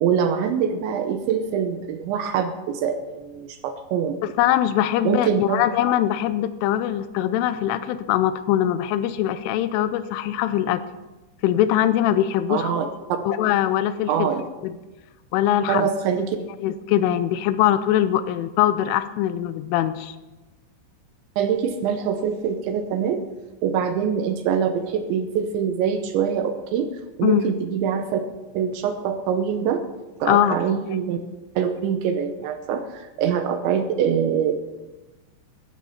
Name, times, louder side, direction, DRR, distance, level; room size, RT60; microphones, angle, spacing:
voice 1, 0.0-4.1 5.0-5.6 12.5-12.9 14.1-14.4 15.7-16.4 21.4-23.2 23.6-26.9 27.2-28.2 28.5-29.8 30.2-31.2 31.6-34.5, right 7 dB, 75° right, 7 dB, 2.9 m, -24 dB
voice 2, 4.4-10.8 11.4-12.7 13.3-14.3 14.6-14.7 15.3-15.9 16.6-20.2 27.2-27.4 30.3-30.6 30.9-31.0, left 11 dB, 80° left, 13 dB, 3.0 m, -22 dB
14.5 x 12.5 x 5.7 m, 1.1 s
omnidirectional pair, 5.9 m